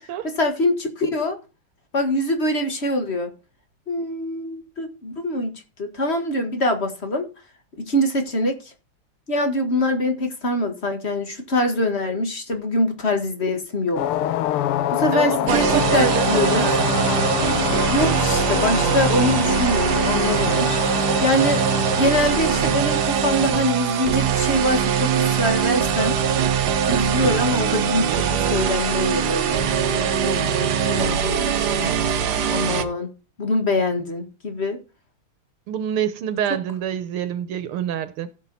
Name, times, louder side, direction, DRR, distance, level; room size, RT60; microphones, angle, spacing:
voice 1, 0.2-1.4 1.9-3.3 3.9-7.3 7.8-8.7 9.3-14.2 14.9-16.6 17.9-20.8 21.2-21.6 22.0-26.2 26.9-32.0 32.5-33.1 33.4-34.8, left 1 dB, 30° left, 1.7 m, -24 dB
sound 1, 14.0-22.7, left 12 dB, 85° left, 1.7 m, -26 dB
voice 2, 15.1-16.9 35.7-38.3, right 9 dB, 80° right, 1.7 m, -26 dB
sound 2, 15.5-32.8, right 7 dB, 55° right, 1.3 m, -22 dB
16.0 x 5.9 x 4.1 m
omnidirectional pair, 2.4 m